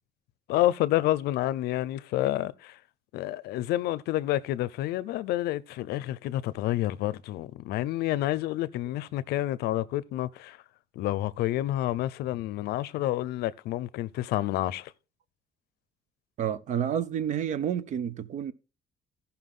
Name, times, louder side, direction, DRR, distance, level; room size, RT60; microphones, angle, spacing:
voice 1, 0.5-2.8 3.1-10.6 11.0-14.9, left 14 dB, 85° left, 0.6 m, -29 dB
voice 2, 16.4-18.5, right 9 dB, 50° right, 0.7 m, -29 dB
15.0 x 5.7 x 3.7 m
cardioid pair, 150°, 16 cm